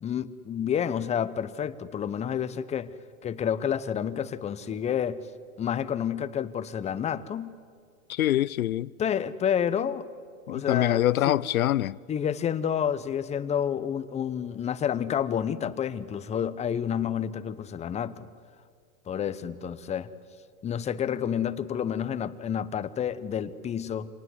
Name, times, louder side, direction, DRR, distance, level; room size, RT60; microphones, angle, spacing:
voice 1, 0.0-2.9 3.2-5.2 5.6-7.5 9.0-10.1 10.5-11.4 12.1-18.3 19.1-20.1 20.6-24.1, left 8 dB, 15° left, 0.8 m, -29 dB
voice 2, 8.1-8.9 10.5-12.0, left 13 dB, 85° left, 0.7 m, -25 dB
26.0 x 19.0 x 9.4 m
hypercardioid pair, 125°, 41 cm